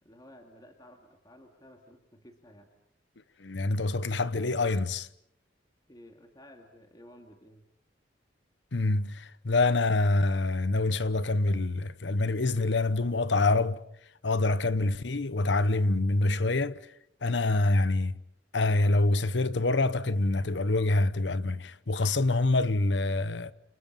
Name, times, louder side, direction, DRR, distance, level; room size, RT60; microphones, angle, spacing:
voice 1, 0.0-2.7 5.9-7.7, left 1 dB, 20° left, 2.3 m, -54 dB
voice 2, 3.4-5.1 8.7-13.8 14.2-16.8 17.2-18.1 18.5-23.5, left 2 dB, 65° left, 1.0 m, -26 dB
30.0 x 28.0 x 5.6 m
head